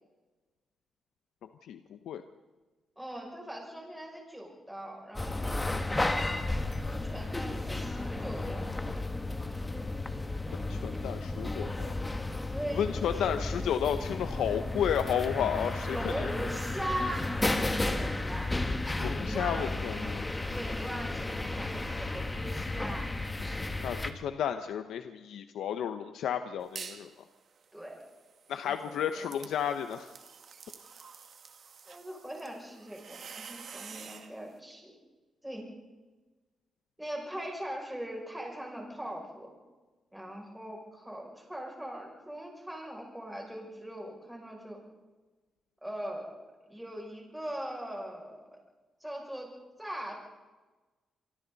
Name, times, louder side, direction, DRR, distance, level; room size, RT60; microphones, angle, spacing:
voice 1, 1.4-2.2 10.5-12.0 12.7-16.3 19.0-20.3 23.8-27.1 28.5-30.1, left 9 dB, 85° left, 8 dB, 0.9 m, -32 dB
voice 2, 3.0-6.5 6.8-8.7 10.9-11.0 12.4-13.3 15.8-18.6 19.2-19.8 20.5-23.1 27.7-28.0 28.6-29.3 31.9-34.9 35.4-35.7 37.0-39.5 40.1-44.8 45.8-46.3 46.7-48.6 49.0-49.5 49.8-50.1, equal, 5° right, -1 dB, 6.7 m, -40 dB
sound 1, 5.1-24.1, left 2 dB, 15° left, 1.5 m, -33 dB
sound 2, 26.6-27.1 27.5-34.3, right 6 dB, 55° right, 2.0 m, -48 dB
26.5 x 24.0 x 4.1 m, 1.2 s
cardioid pair, 105°, 0 cm